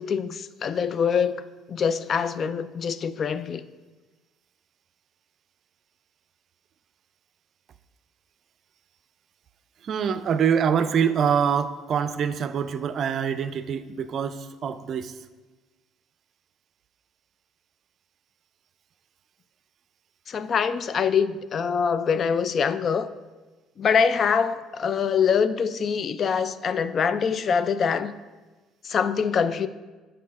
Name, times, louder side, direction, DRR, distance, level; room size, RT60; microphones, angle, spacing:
voice 1, 0.0-1.4 1.7-3.6 20.3-23.1 23.8-28.1 28.8-29.7, left 6 dB, 50° left, 0.3 m, -24 dB
voice 2, 9.8-15.2, right 7 dB, 55° right, 0.4 m, -25 dB
7.3 x 5.4 x 4.1 m
hypercardioid pair, 60°, 0 cm